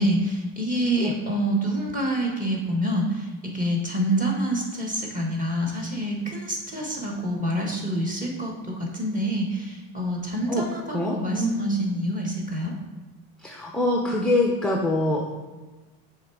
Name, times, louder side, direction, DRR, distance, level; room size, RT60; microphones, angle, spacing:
voice 1, 0.0-12.7, right 1 dB, 20° right, -1 dB, 1.5 m, -27 dB
voice 2, 10.9-11.6 13.4-15.3, left 1 dB, ahead, 0 dB, 0.5 m, -24 dB
6.6 x 3.6 x 4.6 m, 1.3 s
supercardioid pair, 115°, 43 cm